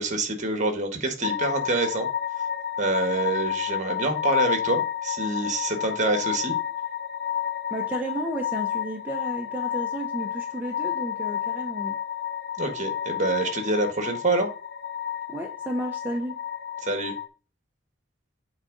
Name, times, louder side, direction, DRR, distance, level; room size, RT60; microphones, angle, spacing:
voice 1, 0.0-2.1 2.8-6.6 12.6-14.5 16.8-17.1, right 2 dB, 40° right, 1.6 m, -26 dB
sound 1, 1.2-17.3, left 9 dB, 55° left, 0.5 m, -30 dB
voice 2, 7.7-12.0 15.3-16.3, right 1 dB, 10° right, 0.8 m, -32 dB
8.1 x 3.7 x 3.9 m
head